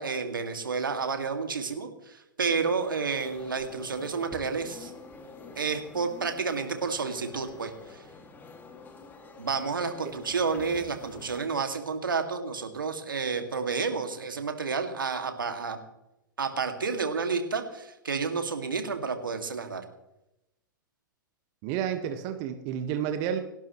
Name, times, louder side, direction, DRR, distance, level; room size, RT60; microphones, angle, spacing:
voice 1, 0.0-4.9 5.6-8.0 9.4-15.8 16.4-19.8, right 5 dB, 80° right, 6 dB, 2.3 m, -30 dB
sound 1, 2.6-11.4, left 4 dB, 15° left, 2.2 m, -47 dB
voice 2, 21.6-23.4, right 9 dB, 40° right, 6 dB, 1.5 m, -30 dB
29.5 x 12.0 x 3.2 m, 0.89 s
figure-of-eight pair, 105°, 11 cm